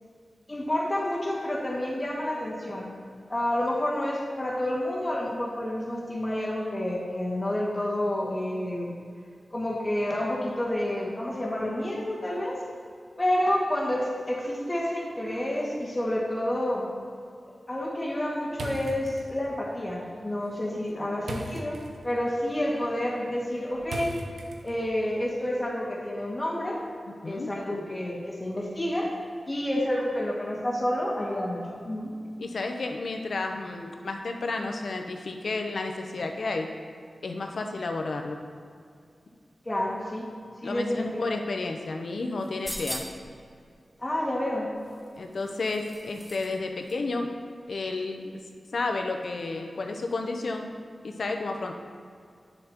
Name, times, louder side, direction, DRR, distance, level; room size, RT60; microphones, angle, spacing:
voice 1, 0.5-2.9 3.3-8.9 9.5-12.6 13.2-16.9 17.7-21.8 22.0-24.1 24.6-26.8 27.2-29.1 29.5-32.1 39.6-40.3 40.6-41.3 44.0-44.7, left 1 dB, 30° left, -4 dB, 1.9 m, -29 dB
sound 1, 18.5-25.0, right 1 dB, 85° right, 0.7 m, -41 dB
voice 2, 32.4-36.7 37.2-38.4 40.6-43.0 45.2-47.3 47.7-48.3 48.7-50.7 51.0-51.7, left 3 dB, 75° left, 4 dB, 0.7 m, -31 dB
sound 2, 42.4-43.3 44.8-46.6 46.9-47.0, equal, 5° left, 1.0 m, -39 dB
9.0 x 7.7 x 3.0 m, 2.3 s
wide cardioid pair, 70°, 0 cm